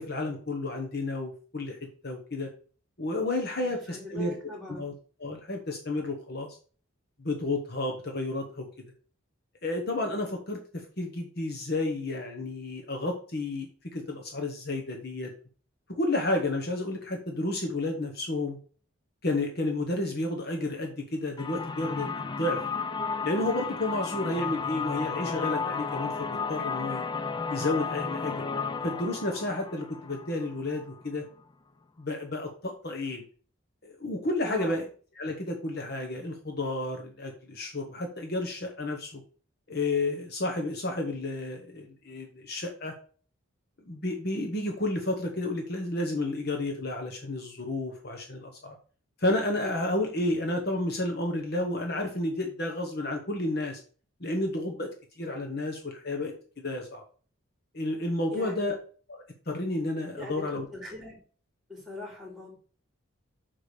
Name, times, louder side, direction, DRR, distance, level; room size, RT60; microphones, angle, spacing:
voice 1, 0.0-1.8 2.0-2.5 3.0-4.4 4.7-4.9 5.2-6.5 7.2-8.7 9.6-15.3 15.9-18.6 19.2-22.6 23.2-27.0 27.5-28.4 28.8-31.2 32.0-33.2 33.8-34.8 35.2-39.2 39.7-42.9 43.9-48.7 49.2-53.8 54.2-54.9 55.2-57.0 57.7-58.8 59.1-59.2 59.5-60.7, left 2 dB, 50° left, 3 dB, 1.2 m, -31 dB
voice 2, 3.6-4.8 34.5-34.8 58.3-58.7 60.2-61.2 61.7-62.5, left 2 dB, ahead, -1 dB, 3.2 m, -41 dB
sound 1, 21.4-31.1, left 5 dB, 20° left, 0.4 m, -33 dB
5.8 x 5.1 x 6.6 m, 0.41 s
head